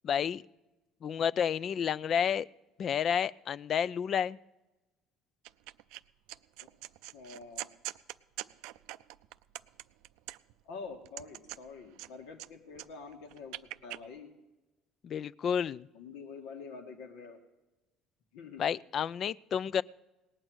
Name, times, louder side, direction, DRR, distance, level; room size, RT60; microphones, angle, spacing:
voice 1, 0.0-0.4 1.0-2.5 2.8-4.4 15.0-15.9 18.6-19.8, left 8 dB, 50° left, 21 dB, 0.4 m, -30 dB
sound 1, 5.4-6.0 6.3-10.6 11.0-12.5 12.7-14.0, right 17 dB, 80° right, 0.4 m, -43 dB
voice 2, 7.1-7.7 10.6-13.6 13.8-14.3 15.9-17.4 18.3-18.6, left 4 dB, 80° left, 4 dB, 1.7 m, -46 dB
18.5 x 8.9 x 6.2 m, 1.1 s
supercardioid pair, 80°, 0 cm